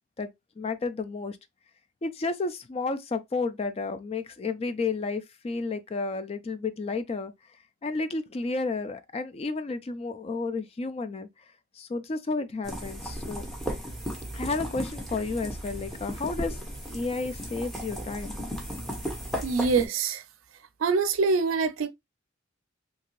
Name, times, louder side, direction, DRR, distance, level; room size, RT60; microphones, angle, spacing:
voice 1, 0.6-1.4 2.0-7.3 7.8-11.3 11.7-13.5 14.3-16.6 16.9-18.4, left 3 dB, 30° left, 0.3 m, -31 dB
sound 1, 12.6-19.9, equal, ahead, 0.8 m, -35 dB
voice 2, 19.4-20.2 20.8-21.9, right 4 dB, 90° right, 0.5 m, -24 dB
2.8 x 2.6 x 2.9 m
head